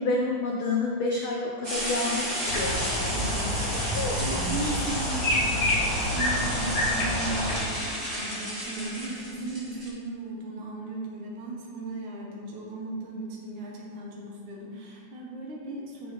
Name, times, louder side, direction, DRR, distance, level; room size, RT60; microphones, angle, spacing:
voice 1, 0.0-2.8 3.6-4.7, left 2 dB, 80° left, -1 dB, 1.1 m, -29 dB
sound 1, 1.6-9.9, equal, 25° right, 2.3 m, -32 dB
sound 2, 2.5-7.6, left 1 dB, 60° left, 2.6 m, -28 dB
voice 2, 3.1-16.1, right 2 dB, 80° right, -3 dB, 2.6 m, -37 dB
9.6 x 6.9 x 3.4 m, 2.1 s
omnidirectional pair, 3.4 m